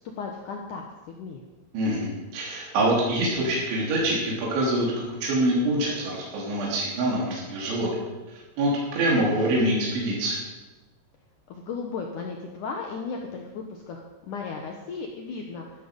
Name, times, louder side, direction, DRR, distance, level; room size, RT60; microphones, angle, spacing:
voice 1, 0.2-0.9 1.2-1.4 11.5-15.6, left 5 dB, 85° left, 1 dB, 1.8 m, -35 dB
voice 2, 1.7-7.9 8.6-10.4, right 1 dB, 75° right, -3 dB, 5.8 m, -25 dB
14.5 x 13.0 x 5.3 m, 1.1 s
omnidirectional pair, 5.4 m